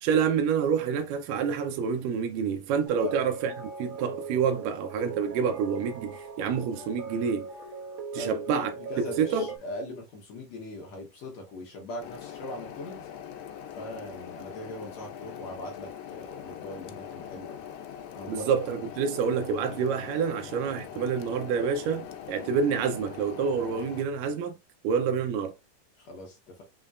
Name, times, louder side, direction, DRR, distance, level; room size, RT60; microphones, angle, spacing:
voice 1, 0.0-7.5 8.1-8.7 9.2-9.5 18.3-24.6 24.8-25.5, right 6 dB, 80° right, 2.2 m, -28 dB
sound 1, 2.8-9.6, right 4 dB, 65° right, 1.9 m, -39 dB
voice 2, 3.0-3.3 8.2-13.1 13.7-17.6 18.1-18.5 26.0-26.6, left 1 dB, 65° left, 2.0 m, -40 dB
sound 2, 12.0-24.0, left 9 dB, 85° left, 2.3 m, -42 dB
5.5 x 3.7 x 2.5 m
omnidirectional pair, 3.9 m